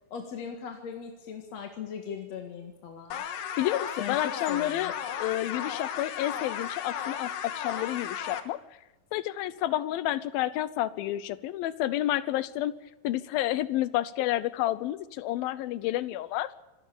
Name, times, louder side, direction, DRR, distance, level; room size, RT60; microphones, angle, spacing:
voice 1, 0.1-3.2 4.0-4.9, left 7 dB, 55° left, 4 dB, 2.7 m, -39 dB
sound 1, 3.1-8.4, left 8 dB, 70° left, 3.1 m, -35 dB
voice 2, 3.6-8.6 9.1-12.7 13.0-16.5, left 14 dB, 90° left, 16 dB, 2.6 m, -30 dB
26.0 x 13.0 x 8.6 m, 1.1 s
omnidirectional pair, 4.1 m